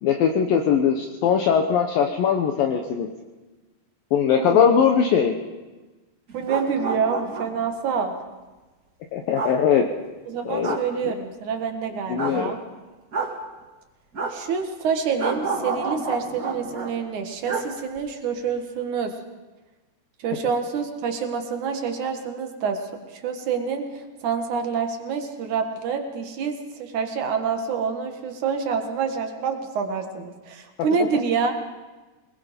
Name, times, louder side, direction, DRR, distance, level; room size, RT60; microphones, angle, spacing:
voice 1, 0.0-3.1 4.1-5.3 9.1-9.8 10.4-10.8 11.0-11.1 12.1-12.5, left 7 dB, 70° left, 4 dB, 2.4 m, -20 dB
sound 1, 6.3-7.7 9.3-9.5 10.6-10.8 12.2-12.4 13.1-13.3 14.1-14.3 15.2-16.9 17.4-17.7 17.9-18.0, right 4 dB, 40° right, 1.3 m, -29 dB
voice 2, 6.3-8.1 10.3-12.6 14.3-19.1 20.2-22.8 23.1-31.5, right 6 dB, 55° right, 5 dB, 2.6 m, -27 dB
25.5 x 20.5 x 5.2 m, 1.2 s
omnidirectional pair, 4.9 m